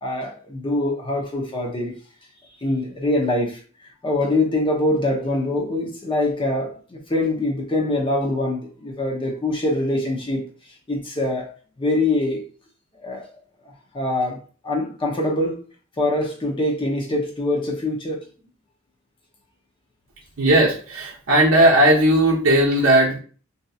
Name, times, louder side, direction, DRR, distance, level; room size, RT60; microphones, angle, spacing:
voice 1, 0.0-2.0 2.6-3.6 4.0-10.4 10.9-11.5 11.8-12.4 13.0-13.3 13.9-14.4 14.6-15.6 16.0-18.2, left 2 dB, 25° left, 0.6 m, -24 dB
voice 2, 20.4-23.2, right 1 dB, 70° right, 0.6 m, -16 dB
2.7 x 2.7 x 2.3 m
head